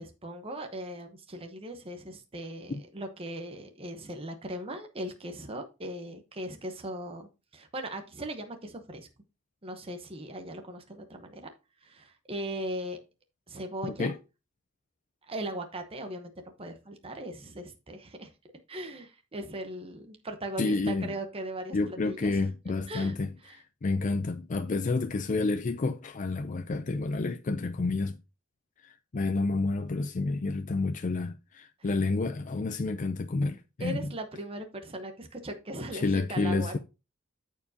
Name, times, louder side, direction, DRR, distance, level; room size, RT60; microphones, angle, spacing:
voice 1, 0.0-9.1 9.6-11.5 11.8-13.0 13.5-14.1 15.3-16.3 16.6-18.3 18.7-22.5 22.9-23.2 23.4-23.6 33.8-36.8, right 1 dB, 30° right, 0.9 m, -39 dB
voice 2, 13.8-14.1 20.6-21.1 21.7-28.1 28.8-34.0 35.9-36.8, left 3 dB, 40° left, 0.4 m, -29 dB
13.5 x 4.7 x 2.8 m
head